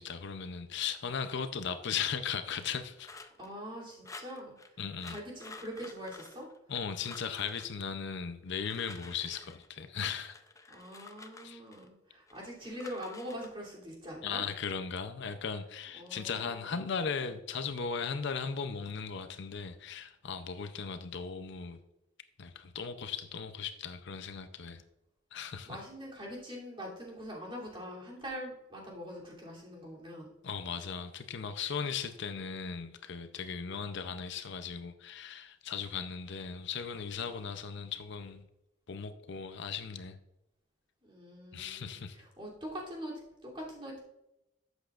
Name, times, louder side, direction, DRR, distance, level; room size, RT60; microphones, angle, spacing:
voice 1, 0.0-3.1 4.8-5.2 6.7-10.3 11.4-11.6 14.2-21.8 22.4-24.8 25.3-25.8 30.4-38.4 38.9-40.2 41.5-42.2, left 6 dB, 65° left, 9 dB, 0.6 m, -37 dB
sound 1, 3.0-3.5 4.0-4.7 5.0-6.8 7.0-7.7 8.4-9.7 10.2-11.9 12.3-13.5, left 3 dB, 15° left, 0.6 m, -51 dB
voice 2, 3.4-4.5 5.1-6.5 10.7-14.4 15.3-15.4 15.9-16.8 25.7-30.3 41.0-44.0, equal, 30° right, -4 dB, 3.0 m, -43 dB
11.5 x 8.1 x 2.5 m, 0.88 s
head